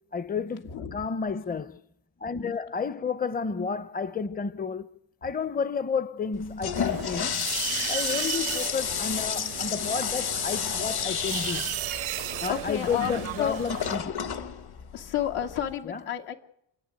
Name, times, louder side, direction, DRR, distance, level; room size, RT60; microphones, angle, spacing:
voice 1, 0.1-1.8 2.2-4.9 5.2-7.5 7.9-11.7 12.4-14.1 15.8-16.0, left 5 dB, 20° left, 0.8 m, -31 dB
voice 2, 0.7-1.0 12.5-13.6 14.9-16.3, left 10 dB, 85° left, 2.9 m, -31 dB
Toilet flush, 6.3-15.7, left 8 dB, 50° left, 1.5 m, -32 dB
sound 1, 6.8-14.0, right 15 dB, 70° right, 0.8 m, -35 dB
28.5 x 11.0 x 9.1 m
cardioid pair, 95°, 50 cm